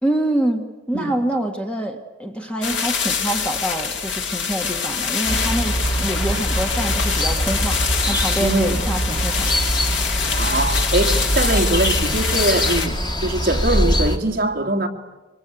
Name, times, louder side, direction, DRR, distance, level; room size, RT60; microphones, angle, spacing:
voice 1, 0.0-9.5, right 1 dB, 5° left, 1.7 m, -26 dB
sound 1, 2.6-12.9, left 6 dB, 65° left, 2.3 m, -25 dB
sound 2, 5.3-14.2, equal, 20° left, 1.9 m, -23 dB
voice 2, 8.4-8.8 10.3-14.9, right 1 dB, 45° right, 2.6 m, -22 dB
25.0 x 25.0 x 9.0 m
head